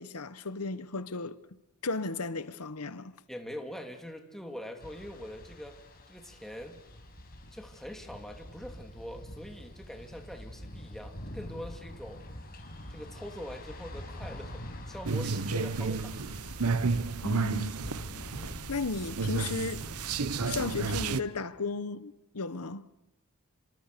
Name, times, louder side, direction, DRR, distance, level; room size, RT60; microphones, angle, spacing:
voice 1, 0.0-1.4 1.8-3.1 17.2-17.7 18.7-19.9 20.4-22.8, left 3 dB, 80° left, 1.2 m, -35 dB
voice 2, 3.3-5.8 6.1-6.8 7.5-12.2 12.9-16.2 16.6-17.1 18.3-18.6, equal, ahead, 2.7 m, -44 dB
sound 1, 4.8-21.1, equal, 45° left, 6.0 m, -45 dB
sound 2, 15.0-21.2, right 4 dB, 75° right, 0.9 m, -32 dB
28.0 x 25.5 x 6.9 m
head